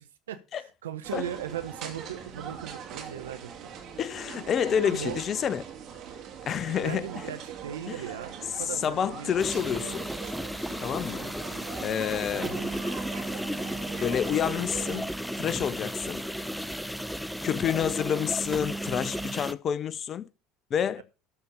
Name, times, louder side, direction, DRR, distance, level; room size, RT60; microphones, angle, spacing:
voice 1, 0.0-3.5 4.8-5.2 6.8-9.9 12.4-12.7 21.0-21.1, right 10 dB, 80° right, 0.8 m, -38 dB
sound 1, 1.0-15.0, right 8 dB, 50° right, 2.4 m, -42 dB
voice 2, 4.0-5.6 6.5-7.1 7.9-8.0 8.8-10.1 10.8-11.3 11.8-12.5 14.0-15.1 15.4-16.2 17.4-20.3 20.7-21.0, left 8 dB, 40° left, 0.6 m, -28 dB
sound 2, 9.4-19.5, equal, ahead, 0.7 m, -34 dB
13.0 x 4.3 x 6.6 m
hypercardioid pair, 70°, 0 cm